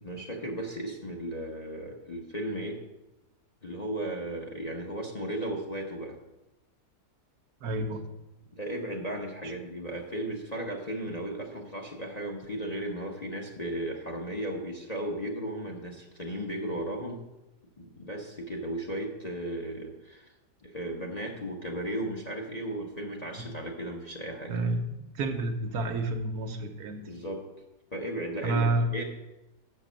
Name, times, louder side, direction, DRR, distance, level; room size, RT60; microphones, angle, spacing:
voice 1, 0.0-2.8 3.6-6.2 8.5-17.2 17.8-20.3 20.6-24.6 27.1-27.5 27.9-29.0, right 1 dB, 30° left, 0 dB, 0.9 m, -35 dB
voice 2, 7.6-8.0 24.5-27.1 28.4-28.9, right 2 dB, 65° right, 5 dB, 1.3 m, -29 dB
6.7 x 6.1 x 7.4 m, 0.98 s
omnidirectional pair, 1.8 m